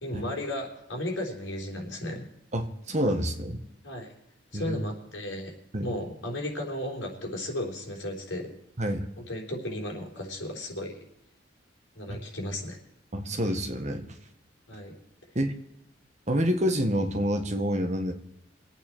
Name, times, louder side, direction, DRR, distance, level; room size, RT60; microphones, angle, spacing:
voice 1, 0.0-2.3 3.8-4.1 4.5-5.5 5.8-8.5 9.2-10.9 12.0-12.8 14.7-14.9, left 1 dB, 70° left, 0 dB, 3.9 m, -34 dB
voice 2, 2.5-3.6 4.5-4.8 5.7-5.9 8.8-9.1 12.1-12.2 13.1-14.1 15.3-15.5 16.3-18.1, equal, 35° right, 6 dB, 1.4 m, -28 dB
24.5 x 8.9 x 4.5 m, 0.81 s
head